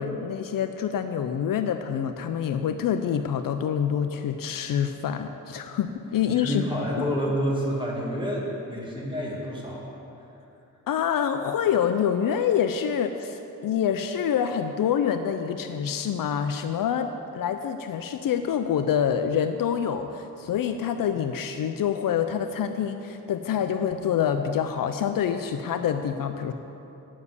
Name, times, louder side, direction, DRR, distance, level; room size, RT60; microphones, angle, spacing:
voice 1, 0.0-6.7 7.0-7.1 10.9-26.5, left 8 dB, 80° left, 7 dB, 0.5 m, -26 dB
voice 2, 6.3-10.0, equal, 15° right, -4 dB, 1.7 m, -29 dB
8.3 x 7.3 x 8.3 m, 2.9 s
wide cardioid pair, 110°, 33 cm